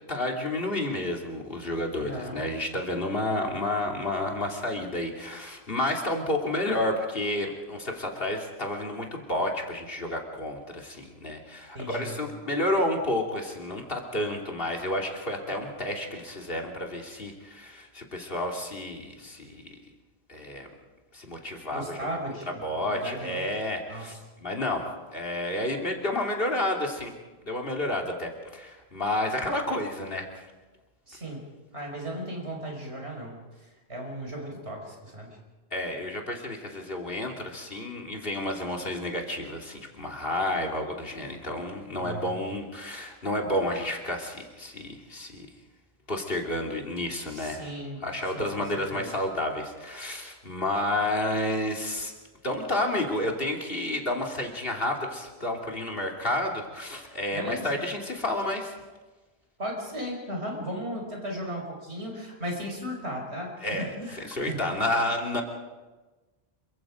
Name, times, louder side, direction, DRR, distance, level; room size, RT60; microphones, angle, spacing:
voice 1, 0.1-19.8 20.3-20.7 21.1-22.2 22.5-27.1 27.5-30.3 35.7-45.5 46.1-47.7 48.0-52.1 52.4-58.7 63.6-63.9 64.2-65.4, left 1 dB, 60° left, 1 dB, 3.1 m, -30 dB
voice 2, 2.0-2.4 11.7-12.1 21.7-23.5 23.9-24.0 31.1-31.4 31.7-33.4 33.9-35.3 42.0-42.3 47.3-48.0 48.3-48.5 48.7-49.1 57.3-57.7 59.6-63.5 64.0-64.2 64.5-64.8, equal, 90° right, 1 dB, 5.6 m, -36 dB
27.5 x 24.0 x 5.1 m, 1.2 s
omnidirectional pair, 1.1 m